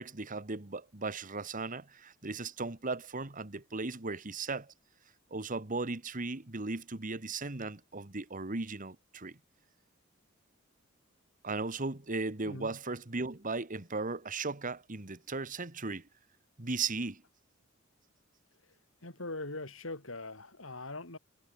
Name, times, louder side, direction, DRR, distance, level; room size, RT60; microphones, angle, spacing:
voice 1, 0.0-4.7 5.3-9.4 11.4-16.0 16.6-17.2, right 3 dB, 40° right, 1.7 m, -37 dB
voice 2, 12.5-12.8 19.0-21.2, left 2 dB, 75° left, 5.6 m, -41 dB
head